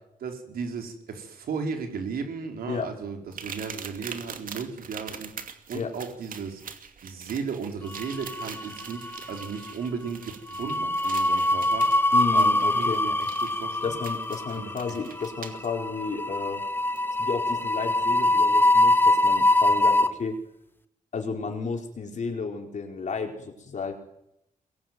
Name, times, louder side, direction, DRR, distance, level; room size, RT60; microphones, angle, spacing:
voice 1, 0.2-6.6 7.0-12.0 12.3-14.0 14.5-15.0, right 5 dB, 85° right, 4 dB, 4.7 m, -35 dB
sound 1, 3.3-15.7 17.0-17.1 17.6-17.8, right 6 dB, 65° right, 2.6 m, -43 dB
sound 2, 8.0-8.8 9.1-9.3 10.5-20.1, left 1 dB, 15° left, 1.4 m, -23 dB
voice 2, 12.1-13.0 13.8-16.6 17.2-20.4 21.1-23.9, left 5 dB, 55° left, 3 dB, 4.7 m, -32 dB
23.0 x 21.5 x 9.4 m, 0.82 s
cardioid pair, 80°, 15 cm